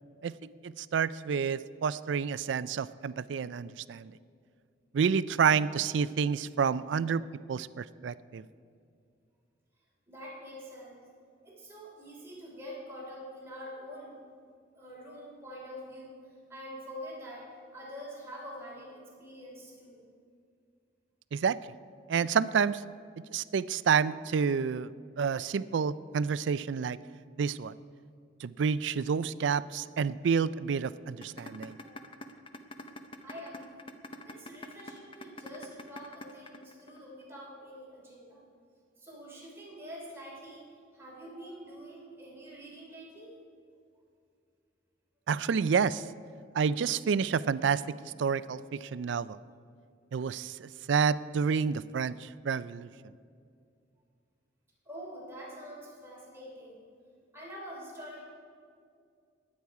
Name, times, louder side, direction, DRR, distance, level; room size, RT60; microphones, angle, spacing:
voice 1, 0.6-4.1 4.9-7.2 7.5-8.4 21.3-21.6 22.1-22.8 23.3-24.9 25.2-27.0 27.4-27.7 28.4-31.8 45.3-46.0 46.5-47.8 48.2-49.4 50.1-52.9, right 6 dB, 75° right, 17 dB, 0.4 m, -29 dB
voice 2, 10.1-11.0 11.4-14.2 14.8-16.2 16.5-20.1 31.8-31.9 33.2-33.8 34.2-38.4 39.0-40.6 40.9-43.4 54.8-56.8 57.3-58.2, equal, 15° right, -4 dB, 3.1 m, -45 dB
sound 1, 31.2-37.2, left 2 dB, 30° left, 0.7 m, -44 dB
21.5 x 8.6 x 4.7 m, 2.3 s
head